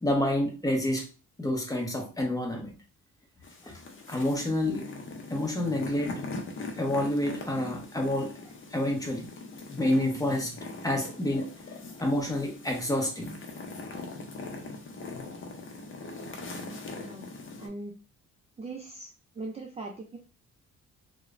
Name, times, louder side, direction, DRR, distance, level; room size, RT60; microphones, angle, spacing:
voice 1, 0.0-1.0 1.4-2.7 3.6-3.7 4.1-4.9 5.3-6.2 6.8-8.3 8.7-9.3 9.7-11.4 12.0-13.4 15.1-15.2, left 1 dB, 10° left, 1 dB, 0.8 m, -28 dB
sound 1, 3.4-17.7, left 3 dB, 40° left, 0.7 m, -41 dB
voice 2, 17.6-18.0 18.6-19.1 19.4-20.2, right 3 dB, 20° right, 1 dB, 0.4 m, -39 dB
2.9 x 2.2 x 2.4 m, 0.36 s
cardioid pair, 90°, 30 cm